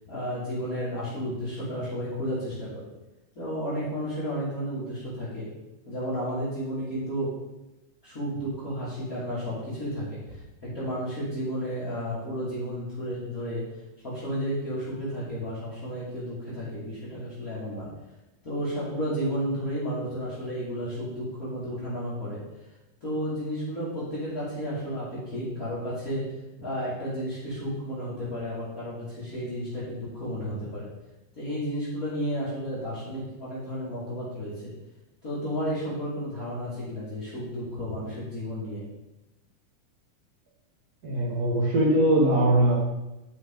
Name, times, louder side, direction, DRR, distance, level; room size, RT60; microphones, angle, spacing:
voice 1, 0.0-2.9 3.3-5.4 5.9-7.3 8.0-13.6 14.0-17.9 18.4-22.4 23.0-26.2 26.6-30.9 31.4-34.7 35.2-38.8, equal, 25° left, -10 dB, 2.8 m, -32 dB
voice 2, 41.0-42.8, right 1 dB, 45° right, -3 dB, 1.3 m, -21 dB
11.0 x 5.8 x 3.9 m, 1.0 s
omnidirectional pair, 3.9 m